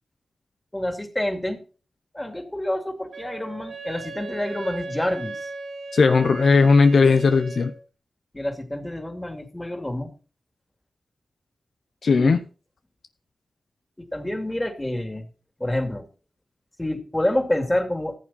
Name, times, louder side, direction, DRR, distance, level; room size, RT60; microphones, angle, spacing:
voice 1, 0.7-1.6 2.1-5.5 8.3-10.1 12.2-12.4 14.1-15.3 15.6-16.1 16.8-18.2, left 1 dB, 15° left, 2.6 m, -28 dB
Wind instrument woodwind instrument, 3.1-7.8, right 3 dB, 80° right, 2.3 m, -37 dB
voice 2, 5.9-7.7 12.0-12.4, left 4 dB, 75° left, 0.8 m, -17 dB
14.5 x 7.5 x 4.2 m
cardioid pair, 50°, 0 cm